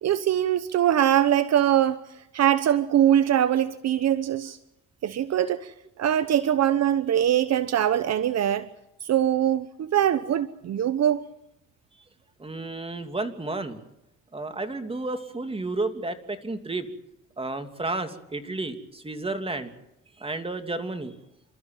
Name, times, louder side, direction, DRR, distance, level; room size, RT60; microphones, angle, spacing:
voice 1, 0.0-2.0 2.3-4.6 5.0-5.7 6.0-8.7 9.0-11.3, right 10 dB, 60° right, 0.9 m, -22 dB
voice 2, 12.4-13.8 14.3-16.9 17.4-19.7 20.2-21.1, right 2 dB, 20° right, 2.9 m, -32 dB
28.5 x 13.5 x 9.2 m
cardioid pair, 90°, 30 cm